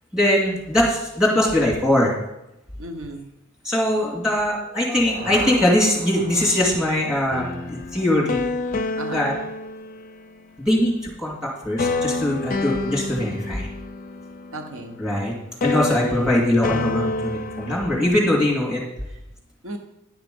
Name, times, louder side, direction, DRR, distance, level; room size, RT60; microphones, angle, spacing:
voice 1, 0.1-2.2 3.6-8.4 9.1-9.3 10.7-13.7 15.0-15.3 15.6-18.8, left 1 dB, 5° right, -3 dB, 2.4 m, -21 dB
voice 2, 2.8-3.3 9.0-9.4 14.5-15.0 15.8-16.3 19.6-19.8, right 1 dB, 70° right, 5 dB, 1.0 m, -35 dB
sound 1, 4.6-8.6, right 1 dB, 40° right, 2.3 m, -40 dB
sound 2, 7.3-10.5 11.8-15.3 15.6-18.1, left 3 dB, 40° left, 0.5 m, -28 dB
10.5 x 5.9 x 5.3 m, 0.89 s
head